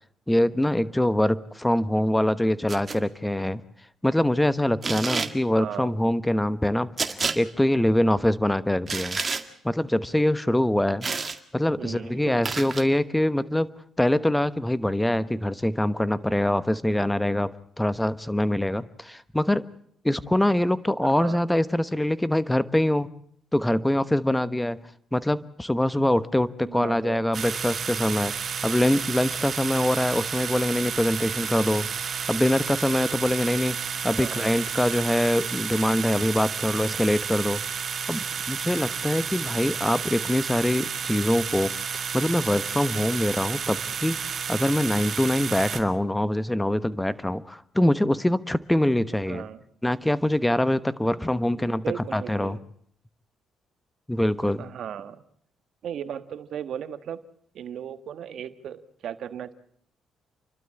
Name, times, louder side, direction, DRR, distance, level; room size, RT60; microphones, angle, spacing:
voice 1, 0.3-3.6 4.0-9.2 9.6-11.1 11.5-13.7 14.0-19.6 20.0-23.1 23.5-24.8 25.1-28.3 28.6-31.9 32.3-33.8 34.0-37.6 38.1-41.7 42.1-49.4 49.8-51.8 52.1-52.6 54.1-54.7, left 1 dB, 10° left, 15 dB, 1.1 m, -24 dB
sound 1, 2.7-3.0 4.8-5.3 7.0-7.4 8.9-9.4 11.0-11.4 12.4-12.8, right 4 dB, 30° right, 1.8 m, -28 dB
voice 2, 5.6-6.0 11.8-12.5 21.0-21.4 26.6-27.3 34.2-34.6 49.1-49.6 51.5-52.6 54.6-55.2 55.8-57.2 57.5-59.5, right 9 dB, 70° right, 11 dB, 1.4 m, -36 dB
sound 2, 27.3-45.8, right 7 dB, 50° right, 2.4 m, -31 dB
29.5 x 12.0 x 8.6 m, 0.66 s
cardioid pair, 90°, 0 cm